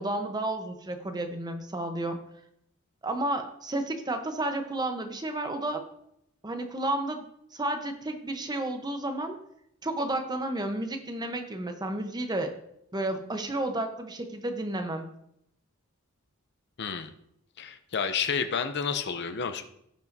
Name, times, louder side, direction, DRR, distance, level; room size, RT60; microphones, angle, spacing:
voice 1, 0.0-2.2 3.0-5.8 6.4-7.2 7.5-9.4 9.8-12.5 12.9-15.1, right 1 dB, 20° right, 5 dB, 0.8 m, -31 dB
voice 2, 16.8-17.1 17.6-19.6, left 6 dB, 50° left, 9 dB, 0.6 m, -30 dB
16.5 x 5.6 x 2.7 m, 0.76 s
head